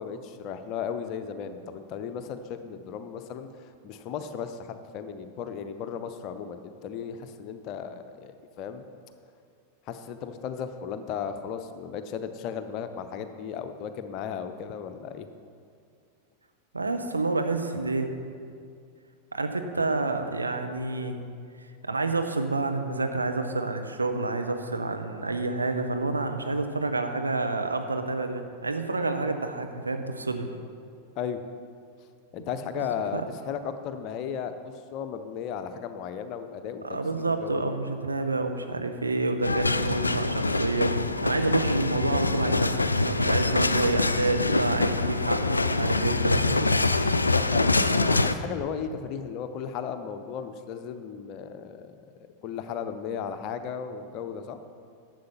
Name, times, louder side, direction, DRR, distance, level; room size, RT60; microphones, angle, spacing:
voice 1, 0.0-3.5 3.8-8.3 8.6-8.8 9.9-15.3 31.2-31.4 32.3-33.2 33.5-34.5 34.9-37.7 47.3-52.0 52.4-54.6, left 7 dB, 40° left, 9 dB, 0.7 m, -35 dB
voice 2, 16.7-18.1 19.3-21.2 21.6-30.5 32.7-32.9 33.1-33.3 36.8-46.6, right 3 dB, 80° right, 6 dB, 0.8 m, -29 dB
sound 1, 39.4-48.4, left 3 dB, 80° left, 0.4 m, -25 dB
11.5 x 7.6 x 5.7 m, 2.3 s
figure-of-eight pair, 90°, 0 cm